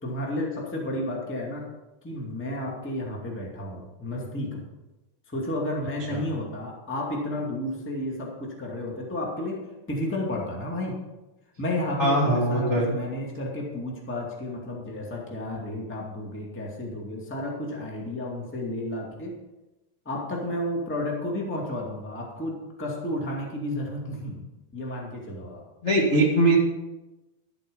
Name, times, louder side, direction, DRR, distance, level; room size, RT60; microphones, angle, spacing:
voice 1, 0.0-1.7 2.0-4.7 5.3-9.6 9.9-11.0 11.6-19.3 20.0-24.4 24.7-25.6, left 1 dB, 5° left, -2 dB, 1.0 m, -32 dB
voice 2, 12.0-12.9 25.8-26.6, right 1 dB, 40° left, -5 dB, 1.0 m, -21 dB
13.0 x 8.1 x 5.4 m, 1.0 s
omnidirectional pair, 4.5 m